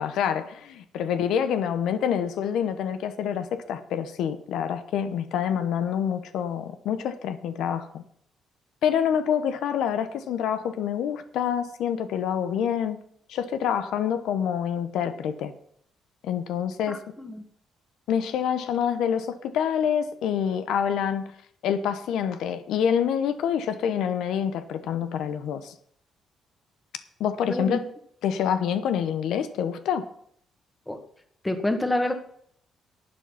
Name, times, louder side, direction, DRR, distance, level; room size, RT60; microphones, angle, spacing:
voice 1, 0.0-8.0 8.8-13.0 13.3-15.5 16.2-17.0 18.1-21.2 21.6-25.7 27.2-27.8 28.2-30.1, left 8 dB, 85° left, 10 dB, 0.9 m, -27 dB
voice 2, 16.9-17.4 27.5-27.8 30.9-31.0 31.4-32.1, left 1 dB, 10° left, 7 dB, 1.6 m, -27 dB
11.0 x 7.8 x 5.7 m, 0.66 s
cardioid pair, 90°, 0 cm